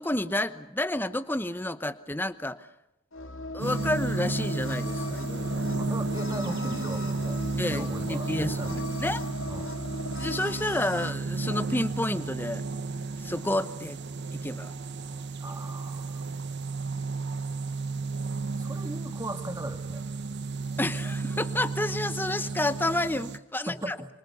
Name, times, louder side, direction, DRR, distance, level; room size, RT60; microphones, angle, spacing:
voice 1, 0.0-2.7 3.5-5.6 7.6-8.7 9.0-9.2 10.2-12.6 13.2-14.0 14.3-14.7 20.8-24.0, left 1 dB, 10° left, 12 dB, 0.9 m, -30 dB
sound 1, 3.1-11.1, left 2 dB, 65° left, 2.4 m, -38 dB
sound 2, 3.6-23.4, right 3 dB, 50° right, 1.2 m, -33 dB
voice 2, 5.7-8.9 9.5-9.8 15.4-16.2 18.6-20.0 23.7-24.1, right 1 dB, 15° right, 7 dB, 2.1 m, -38 dB
28.0 x 26.0 x 7.1 m, 0.87 s
head